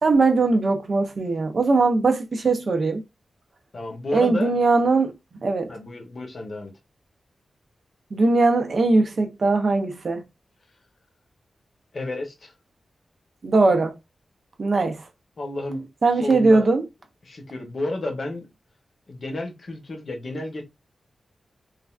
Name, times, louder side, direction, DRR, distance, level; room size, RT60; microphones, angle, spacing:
voice 1, 0.0-3.0 4.1-5.1 5.4-5.7 8.1-10.2 13.4-14.0 14.6-15.0 16.0-16.8, right 3 dB, 45° right, 0.5 m, -20 dB
voice 2, 3.7-4.5 5.7-6.7 11.9-12.5 15.4-15.9 16.2-16.7 17.2-18.5 19.1-20.6, left 2 dB, 45° left, 0.8 m, -31 dB
3.2 x 2.4 x 2.3 m
wide cardioid pair, 175°, 0 cm